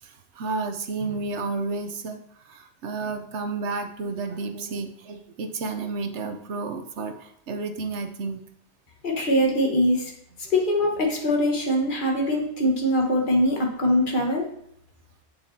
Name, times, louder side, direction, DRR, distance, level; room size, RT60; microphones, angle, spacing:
voice 1, 0.0-8.4, right 3 dB, 85° right, 7 dB, 1.1 m, -31 dB
voice 2, 9.0-10.1 10.5-14.4, left 1 dB, 45° left, 0 dB, 1.6 m, -22 dB
8.2 x 7.5 x 2.8 m, 0.69 s
omnidirectional pair, 1.2 m